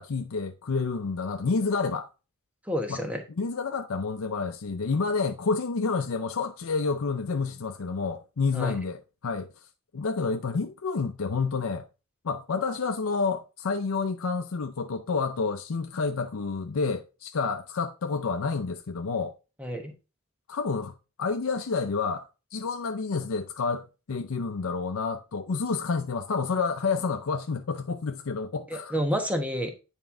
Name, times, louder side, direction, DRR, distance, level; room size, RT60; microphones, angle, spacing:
voice 1, 0.0-2.1 2.9-9.5 9.9-11.9 12.2-19.3 20.5-29.0, left 4 dB, 80° left, 0.6 m, -29 dB
voice 2, 2.7-3.2 8.5-8.7 19.6-19.9 28.7-29.7, equal, 5° right, 1.1 m, -29 dB
9.2 x 4.4 x 3.7 m
head